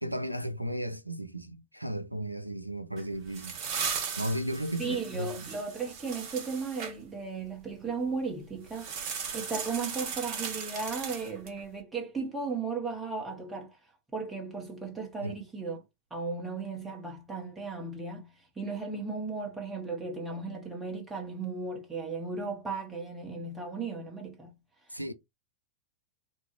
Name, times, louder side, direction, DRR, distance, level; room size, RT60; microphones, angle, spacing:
voice 1, 0.0-3.6 4.2-5.5 15.2-15.4 24.9-25.1, right 1 dB, 90° right, 0.4 m, -35 dB
sound 1, 3.0-6.9 8.7-11.6, right 6 dB, 45° right, 0.8 m, -37 dB
voice 2, 4.8-13.8 14.1-15.8 16.1-18.3 18.6-24.5, right 4 dB, 10° right, 0.9 m, -36 dB
3.6 x 2.0 x 2.9 m
figure-of-eight pair, 90°, 0 cm